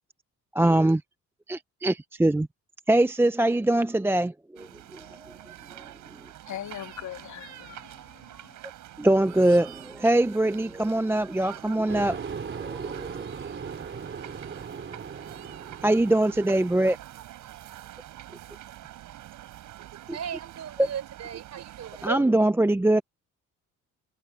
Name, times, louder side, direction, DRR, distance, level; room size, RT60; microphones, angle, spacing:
voice 1, 0.5-1.0 1.5-2.5 2.9-5.4 9.0-12.2 12.5-13.2 15.8-17.0 20.1-20.2 22.0-23.0, right 1 dB, 10° right, 0.6 m, -23 dB
sound 1, 4.6-22.1, right 13 dB, 85° right, 4.4 m, -46 dB
voice 2, 6.4-8.6, left 11 dB, 75° left, 2.7 m, -40 dB
sound 2, 11.9-16.8, right 6 dB, 40° right, 4.1 m, -38 dB
voice 3, 19.8-22.3, right 9 dB, 60° right, 4.9 m, -36 dB
cardioid pair, 90°, 30 cm